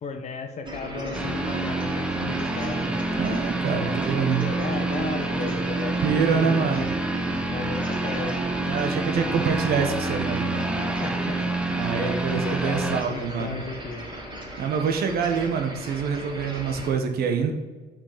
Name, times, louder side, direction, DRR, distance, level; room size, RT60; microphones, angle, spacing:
voice 1, 0.0-3.0 3.7-3.9 4.4-6.9 7.5-8.5 10.8-14.0, left 4 dB, 45° left, 6 dB, 1.1 m, -35 dB
sound 1, 0.6-16.9, right 1 dB, 30° right, 2.7 m, -36 dB
sound 2, 1.1-13.0, right 2 dB, 5° right, 0.8 m, -28 dB
voice 2, 3.2-4.4 6.0-6.9 7.8-7.9 8.6-10.8 11.7-13.6 14.6-17.5, right 6 dB, 65° right, 5 dB, 1.3 m, -26 dB
5.9 x 5.3 x 6.8 m, 1.3 s
cardioid pair, 110°, 17 cm